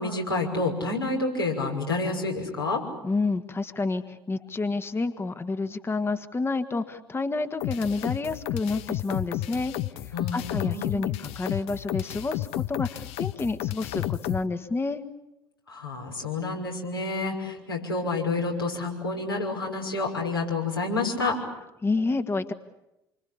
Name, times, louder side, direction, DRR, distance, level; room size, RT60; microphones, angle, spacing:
voice 1, 0.0-2.8 10.1-11.1 15.7-21.4, left 3 dB, 90° left, -2 dB, 6.1 m, -29 dB
voice 2, 3.0-9.7 10.0-15.0 21.8-22.5, left 3 dB, 20° left, 9 dB, 1.7 m, -29 dB
sound 1, 7.6-14.4, left 15 dB, 55° left, 1.1 m, -31 dB
28.0 x 25.0 x 8.6 m, 0.91 s
figure-of-eight pair, 60°, 12 cm